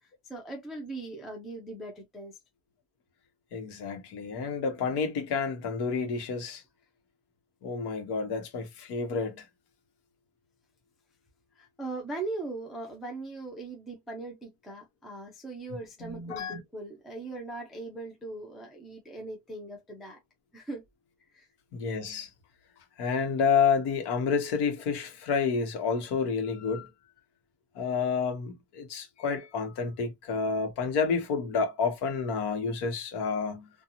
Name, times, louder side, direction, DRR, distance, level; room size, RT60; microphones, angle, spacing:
voice 1, 0.0-2.4 11.6-20.2 20.5-20.8 21.3-21.5, right 2 dB, ahead, 0.3 m, -40 dB
voice 2, 3.5-6.6 7.6-9.5 16.0-16.6 21.7-22.3 23.0-26.9 27.7-33.7, left 5 dB, 60° left, 1.0 m, -29 dB
2.8 x 2.3 x 2.5 m
cardioid pair, 170°, 45 cm